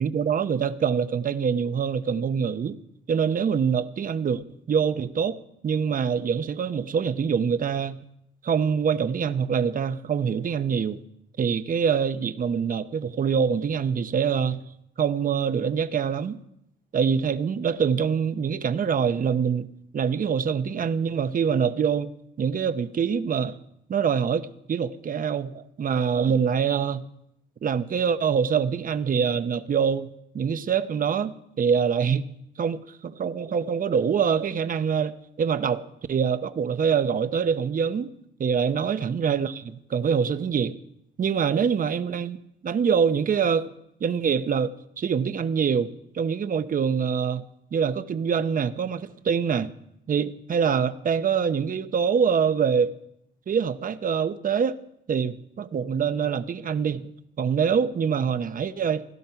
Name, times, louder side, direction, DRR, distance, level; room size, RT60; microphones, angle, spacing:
voice 1, 0.0-2.8 3.1-4.4 4.7-5.4 5.6-8.0 8.4-11.0 11.4-14.6 15.0-16.4 16.9-19.7 19.9-22.1 22.4-23.6 23.9-27.1 27.6-30.1 30.3-32.3 32.6-38.1 38.4-40.7 41.2-43.7 44.0-47.4 47.7-49.7 50.1-52.9 53.5-54.8 55.1-57.1 57.4-59.1, right 7 dB, 45° right, 12 dB, 0.9 m, -25 dB
16.5 x 12.5 x 5.8 m, 0.78 s
cardioid pair, 90°, 20 cm